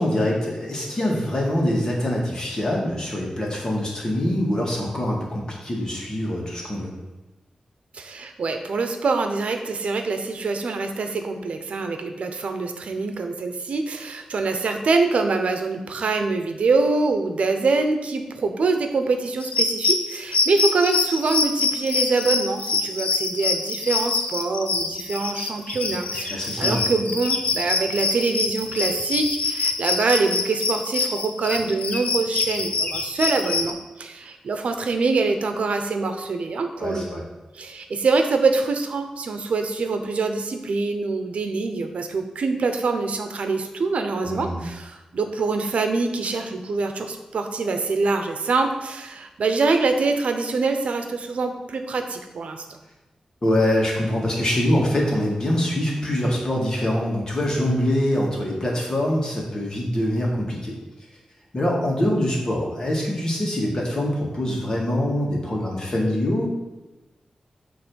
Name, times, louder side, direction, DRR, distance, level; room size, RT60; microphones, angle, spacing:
voice 1, 0.0-6.9 26.3-26.8 36.8-37.2 44.2-44.6 53.4-60.8 61.5-66.5, left 1 dB, 35° left, -2 dB, 1.9 m, -24 dB
voice 2, 7.9-37.0 37.5-52.8, right 3 dB, 75° right, 6 dB, 0.8 m, -24 dB
sound 1, 19.4-33.7, left 3 dB, 80° left, 0.7 m, -25 dB
8.6 x 3.3 x 6.3 m, 1.1 s
wide cardioid pair, 135°, 2 cm